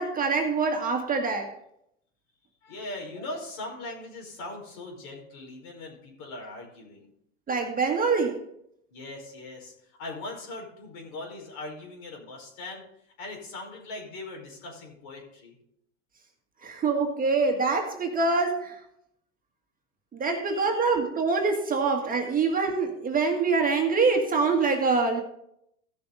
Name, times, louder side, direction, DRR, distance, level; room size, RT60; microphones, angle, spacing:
voice 1, 0.0-1.5 7.5-8.4 16.6-18.8 20.1-25.2, right 4 dB, 20° right, 3 dB, 1.7 m, -25 dB
voice 2, 2.6-7.1 8.9-12.8 13.2-15.5 20.3-20.8, left 2 dB, 60° left, 1 dB, 5.0 m, -40 dB
16.0 x 6.8 x 3.9 m, 0.75 s
hypercardioid pair, 105°, 38 cm